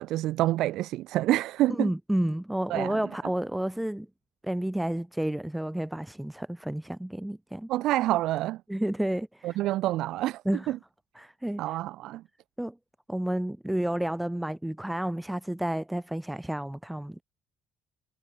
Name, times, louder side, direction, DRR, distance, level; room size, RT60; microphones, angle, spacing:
voice 1, 0.0-1.9 2.7-3.0 7.7-8.6 9.4-10.8 11.6-12.2, right 15 dB, 75° right, 0.5 m, -27 dB
voice 2, 1.7-4.1 4.4-7.7 8.7-9.6 10.5-10.8 11.2-11.8 12.6-12.8 13.1-17.2, right 1 dB, 5° right, 0.3 m, -31 dB
cardioid pair, 95°, 0 cm